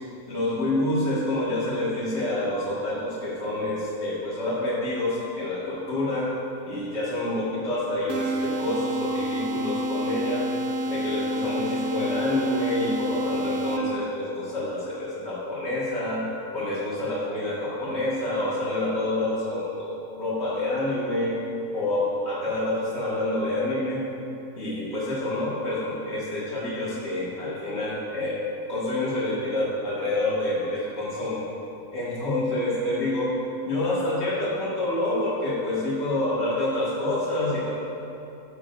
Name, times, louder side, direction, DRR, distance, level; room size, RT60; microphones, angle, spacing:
voice 1, 0.3-6.3 6.7-10.4 10.9-16.2 16.5-21.4 21.7-24.0 24.6-28.4 28.7-31.4 31.9-33.3 33.7-37.7, left 1 dB, 45° left, -9 dB, 2.0 m, -27 dB
sound 1, 8.1-14.1, right 1 dB, 65° right, 0.7 m, -29 dB
13.5 x 6.6 x 2.5 m, 2.8 s
omnidirectional pair, 1.5 m